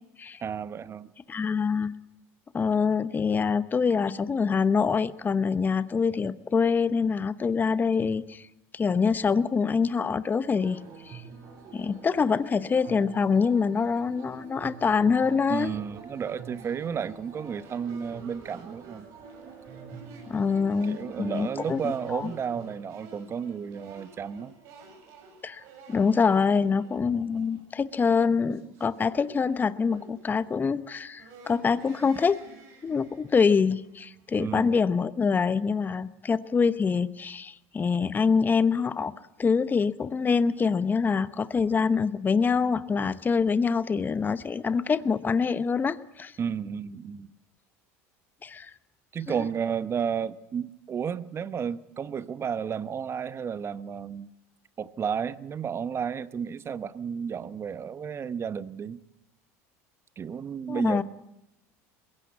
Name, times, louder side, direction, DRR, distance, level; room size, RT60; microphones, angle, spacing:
voice 1, 0.4-1.1 15.5-19.1 20.8-24.5 34.4-34.7 46.4-47.3 49.1-54.3 54.8-59.0 60.2-61.0, right 7 dB, 35° right, 16 dB, 0.9 m, -32 dB
voice 2, 1.3-1.9 2.5-8.5 8.7-11.2 11.7-15.7 20.2-21.8 22.1-22.3 25.4-25.6 25.9-32.4 32.8-39.1 39.4-46.3 48.4-48.7 60.7-61.0, left 5 dB, 25° left, 15 dB, 0.8 m, -25 dB
sound 1, 10.5-22.8, right 6 dB, 50° right, 7.0 m, -46 dB
sound 2, 15.2-34.9, right 4 dB, 70° right, 7.5 m, -53 dB
21.5 x 16.5 x 8.4 m, 0.88 s
hypercardioid pair, 90°, 8 cm